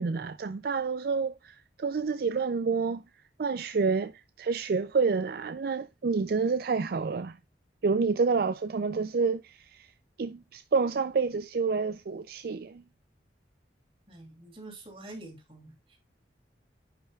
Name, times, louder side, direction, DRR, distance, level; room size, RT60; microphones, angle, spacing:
voice 1, 0.0-3.0 3.4-7.4 7.8-9.9 10.2-12.8, right 4 dB, 55° right, 0.4 m, -28 dB
voice 2, 14.1-15.7, right 2 dB, 30° right, 3.1 m, -46 dB
10.5 x 5.6 x 2.3 m
head